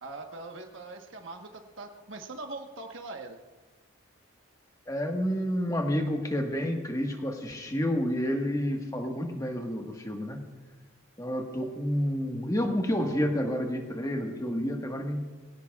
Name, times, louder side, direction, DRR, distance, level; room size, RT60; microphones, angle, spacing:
voice 1, 0.0-3.4, right 3 dB, 70° right, 4 dB, 1.2 m, -42 dB
voice 2, 4.9-10.4 11.2-15.2, equal, 15° left, 3 dB, 1.5 m, -29 dB
22.0 x 17.5 x 2.4 m, 1.3 s
head